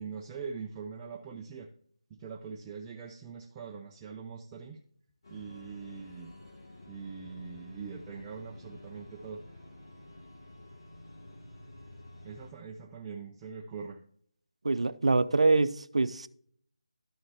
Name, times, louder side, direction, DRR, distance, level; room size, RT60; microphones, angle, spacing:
voice 1, 0.0-1.7 2.2-4.8 5.3-6.3 6.9-9.4 12.2-14.0, right 5 dB, 15° right, 0.4 m, -42 dB
sound 1, 5.2-12.5, left 1 dB, 45° left, 2.6 m, -50 dB
voice 2, 14.6-16.3, right 3 dB, 75° right, 0.6 m, -25 dB
12.0 x 6.5 x 2.8 m
figure-of-eight pair, 165°, 3 cm